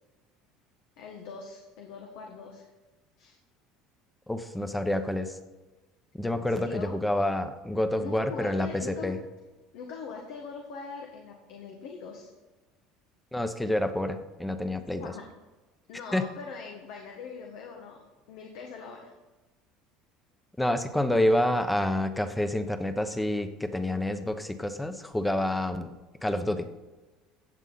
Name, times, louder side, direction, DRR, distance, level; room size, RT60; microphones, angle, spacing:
voice 1, 1.0-2.6 3.2-3.4 6.4-7.0 8.0-9.1 9.7-12.3 15.0-15.2 15.9-18.0 18.3-19.1, left 5 dB, 70° left, 1 dB, 1.6 m, -42 dB
voice 2, 4.3-5.4 6.2-9.2 13.3-15.1 16.1-16.2 20.6-25.9 26.2-26.7, left 1 dB, 5° left, 8 dB, 1.0 m, -28 dB
15.0 x 8.1 x 4.1 m, 1.2 s
supercardioid pair, 105°, 0 cm